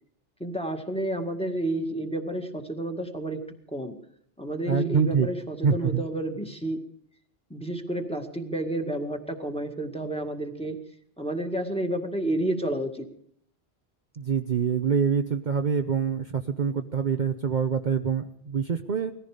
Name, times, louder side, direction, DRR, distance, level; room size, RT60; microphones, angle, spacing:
voice 1, 0.4-3.4 3.7-3.9 4.4-6.8 7.5-10.8 11.2-13.1, right 1 dB, 5° left, 3 dB, 2.0 m, -30 dB
voice 2, 4.7-5.3 5.6-6.0 14.2-19.1, right 6 dB, 50° right, 6 dB, 0.9 m, -25 dB
19.5 x 15.0 x 5.0 m, 0.69 s
omnidirectional pair, 1.1 m